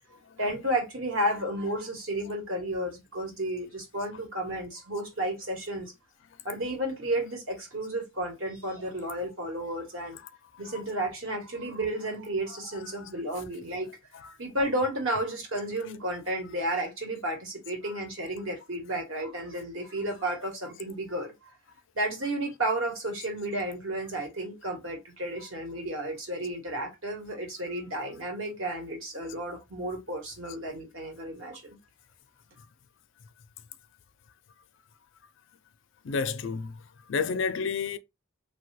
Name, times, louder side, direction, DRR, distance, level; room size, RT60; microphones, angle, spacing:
voice 1, 0.4-5.9 6.4-10.2 10.6-14.0 14.4-21.3 21.9-31.8, right 1 dB, 60° right, 1.1 m, -32 dB
voice 2, 36.0-36.7 37.1-38.0, left 5 dB, 55° left, 0.4 m, -30 dB
3.2 x 2.2 x 3.1 m
head